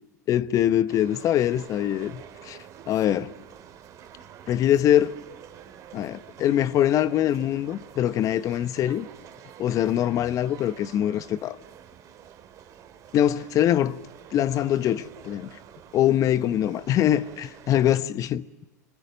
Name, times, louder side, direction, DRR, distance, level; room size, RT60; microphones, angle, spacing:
voice 1, 0.3-2.6 2.9-3.3 4.5-5.2 5.9-9.1 9.6-11.6 13.1-14.0 14.3-15.5 15.9-18.7, left 11 dB, 35° left, 1.0 m, -23 dB
sound 1, 0.9-18.0, right 9 dB, 35° right, 2.8 m, -48 dB
27.0 x 24.5 x 7.9 m
hypercardioid pair, 95°, 9 cm